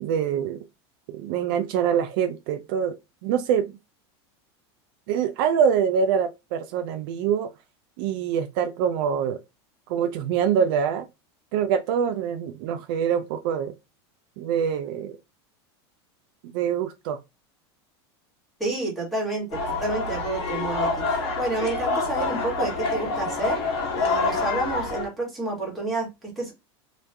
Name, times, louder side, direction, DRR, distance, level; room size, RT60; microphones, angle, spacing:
voice 1, 0.0-0.6 1.1-3.0 3.2-3.7 5.1-7.5 8.0-9.4 9.9-11.1 11.5-13.7 14.4-15.2 16.4-17.2, right 8 dB, 55° right, 0.4 m, -24 dB
voice 2, 18.6-23.6 24.0-26.5, right 2 dB, ahead, 1.3 m, -29 dB
sound 1, 19.5-25.1, left 3 dB, 80° left, 1.2 m, -27 dB
3.1 x 2.2 x 3.2 m
supercardioid pair, 155°, 14 cm